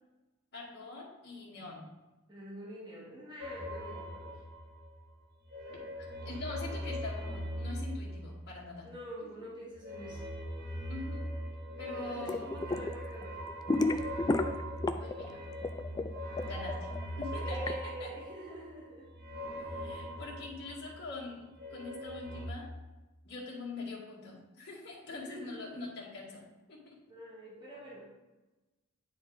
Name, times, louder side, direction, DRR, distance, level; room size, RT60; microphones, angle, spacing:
voice 1, 0.5-1.9 6.2-8.9 9.4-9.5 10.9-11.3 11.8-12.5 15.0-15.4 16.5-16.9 17.2-17.7 18.0-18.1 19.6-22.7 23.2-27.0, left 3 dB, 55° left, -5 dB, 1.9 m, -43 dB
voice 2, 2.3-4.4 8.8-10.2 11.9-13.4 17.4-19.1 25.1-25.7 27.1-28.1, right 1 dB, 20° right, -7 dB, 2.1 m, -46 dB
sound 1, 3.4-5.0 5.3-8.9 9.7-21.1 21.4-22.4, equal, 45° right, 1.8 m, -41 dB
sound 2, 12.2-12.9 13.2-15.3 15.5-17.7, left 2 dB, 20° left, 0.3 m, -31 dB
9.6 x 4.2 x 3.9 m, 1.1 s
head